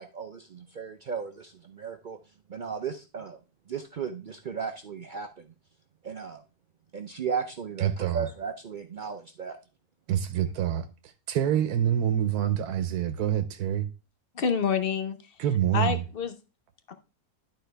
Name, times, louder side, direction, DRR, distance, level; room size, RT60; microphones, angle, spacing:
voice 1, 0.0-2.2 2.5-3.4 3.7-5.5 6.0-6.4 6.9-9.6, right 6 dB, 65° right, 0.4 m, -35 dB
voice 2, 7.8-8.3 10.1-13.9 15.4-16.0, right 10 dB, 90° right, 1.2 m, -26 dB
voice 3, 14.4-15.2 15.7-16.4 16.9-17.0, left 6 dB, 45° left, 0.9 m, -27 dB
11.5 x 4.4 x 3.3 m
omnidirectional pair, 1.6 m